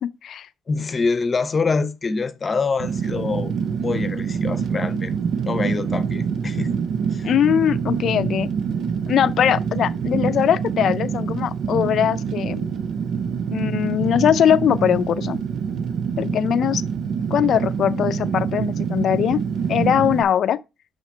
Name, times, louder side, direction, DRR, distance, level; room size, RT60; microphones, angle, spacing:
voice 1, 0.7-3.5 3.8-5.2 5.4-6.7 7.1-7.3, left 4 dB, 35° left, 0.8 m, -25 dB
Fire, 2.8-20.2, right 6 dB, 70° right, 0.6 m, -25 dB
voice 2, 7.2-8.5 9.1-12.7 13.5-15.4 16.2-16.8 17.3-19.4 19.7-20.6, left 9 dB, 65° left, 0.4 m, -20 dB
5.9 x 5.7 x 4.4 m
cardioid pair, 90°, 0 cm